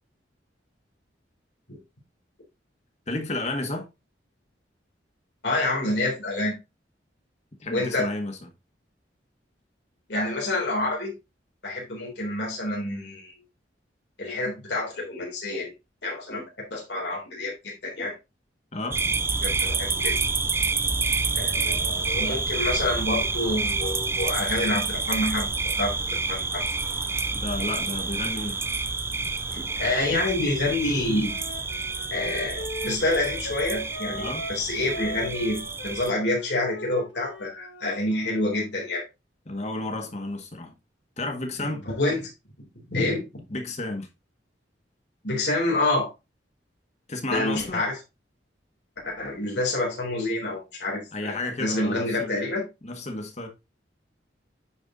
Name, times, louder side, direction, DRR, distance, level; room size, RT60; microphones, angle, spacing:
voice 1, 3.1-3.9 7.6-8.4 18.7-19.0 27.3-28.6 34.1-34.5 39.5-40.8 41.2-41.9 43.5-44.1 47.1-47.9 51.1-52.4 52.8-53.5, left 2 dB, 40° left, 1.8 m, -32 dB
voice 2, 5.4-6.5 7.7-8.1 10.1-11.1 11.6-13.3 14.2-15.7 16.0-16.4 16.7-18.1 19.4-20.2 21.3-25.5 25.8-25.9 26.3-26.6 29.5-31.4 32.1-39.0 42.0-42.3 42.9-43.4 45.2-46.1 47.3-48.0 49.0-51.3 51.6-52.6, left 2 dB, 70° left, 3.7 m, -27 dB
sound 1, 18.9-36.1, right 3 dB, 15° right, 0.4 m, -28 dB
Wind instrument woodwind instrument, 31.2-38.6, equal, 85° left, 1.8 m, -39 dB
9.7 x 4.6 x 3.8 m
head